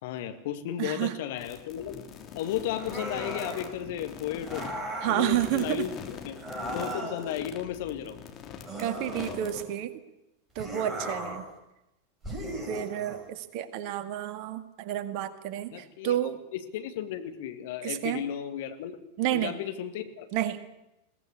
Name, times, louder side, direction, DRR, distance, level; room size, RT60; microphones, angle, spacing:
voice 1, 0.0-2.0 2.3-4.7 5.1-6.4 6.7-8.2 15.7-16.2 16.5-19.0 19.3-20.3, left 10 dB, 50° left, 8 dB, 2.1 m, -34 dB
voice 2, 0.8-1.2 5.0-5.9 8.8-9.9 10.6-11.4 12.7-16.4 17.8-18.2 19.2-19.5 20.3-20.6, right 12 dB, 45° right, 11 dB, 1.9 m, -30 dB
sound 1, 1.4-9.6, left 7 dB, 30° left, 3.2 m, -43 dB
sound 2, 2.8-3.7 4.4-5.2 6.4-7.4 8.7-9.8 10.6-11.5 12.2-13.2, right 1 dB, 10° right, 6.8 m, -37 dB
21.5 x 18.0 x 8.3 m, 0.90 s
figure-of-eight pair, 90°, 0 cm